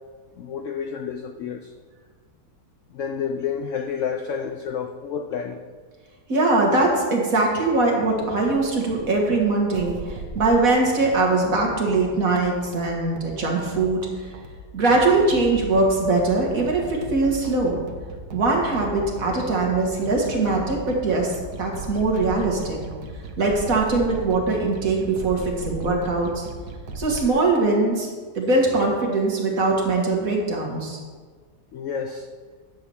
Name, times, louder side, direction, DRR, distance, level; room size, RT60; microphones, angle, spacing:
voice 1, 0.4-1.7 2.9-5.6 31.7-32.3, left 7 dB, 75° left, 7 dB, 0.7 m, -30 dB
voice 2, 6.3-14.3 14.7-17.8 18.3-21.3 21.6-22.8 23.4-26.5 27.0-28.1 28.4-31.0, right 3 dB, 55° right, 0 dB, 1.9 m, -21 dB
sound 1, 8.1-27.3, right 2 dB, 70° right, 1.3 m, -37 dB
9.6 x 4.7 x 7.0 m, 1.5 s
omnidirectional pair, 1.8 m